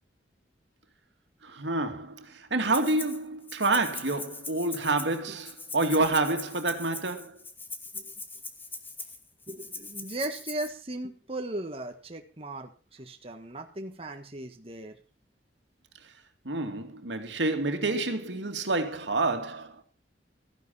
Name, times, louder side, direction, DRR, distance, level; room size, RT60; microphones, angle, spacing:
voice 1, 1.4-7.4 16.4-19.8, right 2 dB, 90° right, 2.4 m, -28 dB
Rattle (instrument), 2.7-3.2 3.5-10.7, left 3 dB, 10° left, 1.6 m, -41 dB
voice 2, 9.5-15.0, right 1 dB, 35° right, 1.6 m, -37 dB
15.0 x 10.5 x 5.6 m
head